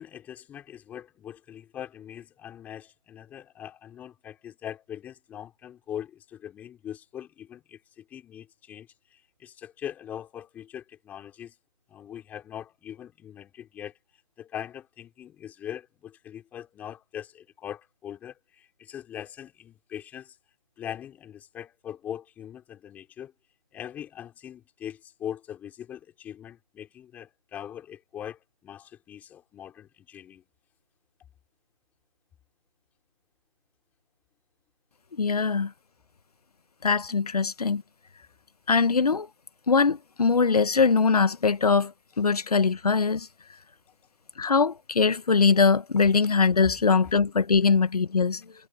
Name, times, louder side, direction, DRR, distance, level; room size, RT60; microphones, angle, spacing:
voice 1, 0.0-11.5 11.9-13.9 14.4-20.4 20.8-23.3 23.7-30.4 46.6-46.7, left 10 dB, 10° left, 4.0 m, -41 dB
voice 2, 35.1-35.7 36.8-37.8 38.7-39.3 39.7-43.3 44.4-48.4, left 5 dB, 80° left, 1.2 m, -22 dB
hypercardioid pair, 165°, 19 cm